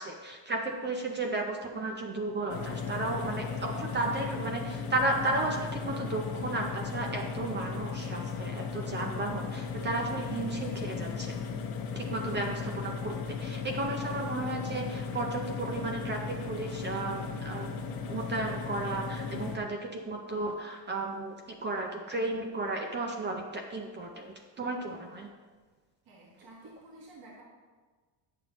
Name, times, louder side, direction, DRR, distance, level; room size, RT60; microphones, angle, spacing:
voice 1, 0.0-11.4 11.9-17.7 18.1-25.3, right 2 dB, 25° right, 2 dB, 0.5 m, -34 dB
sound 1, 2.5-19.6, left 5 dB, 50° left, 0.9 m, -36 dB
voice 2, 26.0-27.4, right 2 dB, 50° right, -4 dB, 1.5 m, -52 dB
9.1 x 6.7 x 3.0 m, 1.4 s
cardioid pair, 155°, 47 cm